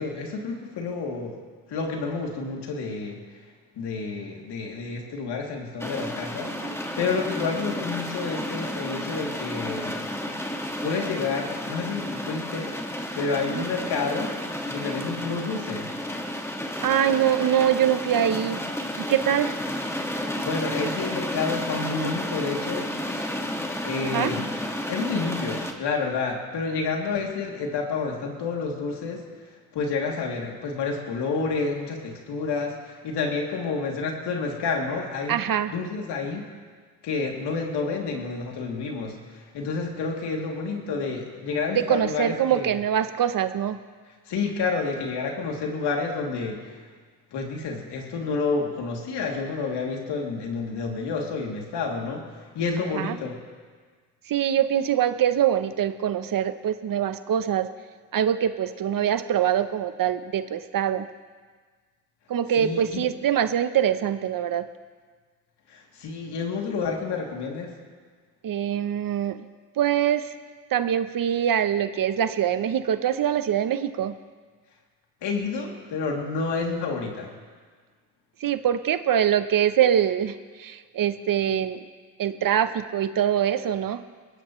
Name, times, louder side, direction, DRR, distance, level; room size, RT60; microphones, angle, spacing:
voice 1, 0.0-1.4 1.7-3.4 3.8-10.0 10.8-12.9 13.1-14.3 14.6-15.9 20.4-22.9 23.8-24.5 24.9-29.2 29.7-36.5 37.0-42.8 44.3-46.8 47.3-52.3 52.5-53.4 62.4-63.1 65.7-67.7 75.2-77.3, left 4 dB, 70° left, 0 dB, 3.1 m, -29 dB
sound 1, 5.8-25.7, left 1 dB, 5° left, 1.9 m, -32 dB
voice 2, 6.4-6.7 13.4-13.6 16.8-18.6 19.0-19.5 24.0-24.3 35.3-35.7 41.7-43.8 52.8-53.2 54.3-57.7 58.1-61.1 62.3-64.7 68.4-69.5 69.8-70.4 70.7-74.1 78.4-81.8 82.2-84.0, right 10 dB, 50° right, 11 dB, 0.9 m, -24 dB
21.0 x 16.5 x 3.2 m, 1.5 s
supercardioid pair, 75°, 43 cm